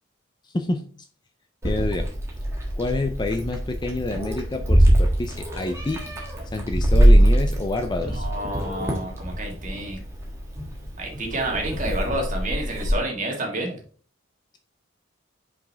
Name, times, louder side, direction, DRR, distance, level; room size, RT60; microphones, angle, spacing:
voice 1, 0.4-0.8 1.6-2.1 2.8-6.0 6.5-8.3, left 2 dB, 20° left, 7 dB, 0.4 m, -28 dB
Meow, 1.6-12.9, right 1 dB, 15° right, 1.4 m, -22 dB
voice 2, 8.1-10.0 11.0-13.8, right 1 dB, 35° right, 0 dB, 1.7 m, -29 dB
5.7 x 5.0 x 3.3 m, 0.43 s
head